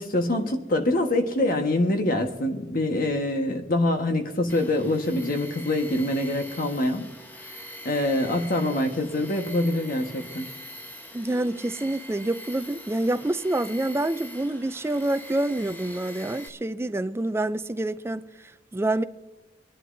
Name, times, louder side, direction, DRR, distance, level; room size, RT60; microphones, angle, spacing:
voice 1, 0.0-7.1 7.4-10.5, left 1 dB, 50° left, 1.4 m, -25 dB
Tools, 4.5-16.5, equal, 10° left, 1.1 m, -43 dB
voice 2, 11.1-18.3 18.7-19.0, right 1 dB, 15° right, 0.4 m, -27 dB
26.0 x 11.5 x 2.7 m
head